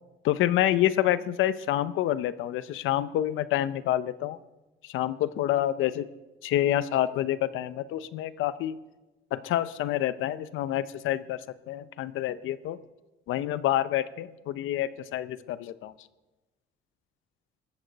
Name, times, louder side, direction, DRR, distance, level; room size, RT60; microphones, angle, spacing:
voice 1, 0.2-4.4 4.8-6.1 6.4-8.8 9.3-11.4 11.7-12.8 13.3-15.9, left 13 dB, 90° left, 14 dB, 0.7 m, -27 dB
20.0 x 14.0 x 4.1 m, 1.1 s
cardioid pair, 90°, 20 cm